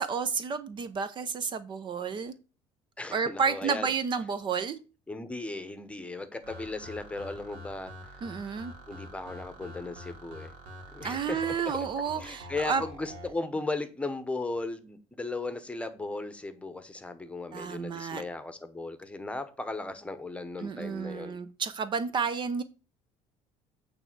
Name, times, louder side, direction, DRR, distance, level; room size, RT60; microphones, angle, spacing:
voice 1, 0.0-2.3 3.1-4.8 8.2-8.7 11.0-12.8 17.5-18.2 20.6-22.6, right 6 dB, 40° right, 0.7 m, -31 dB
voice 2, 3.0-3.9 5.1-8.2 8.9-10.5 10.9-11.8 12.1-21.4, left 2 dB, 10° left, 1.0 m, -36 dB
sound 1, 6.4-13.3, equal, 70° right, 2.4 m, -46 dB
8.8 x 3.4 x 6.0 m
cardioid pair, 120°, 13 cm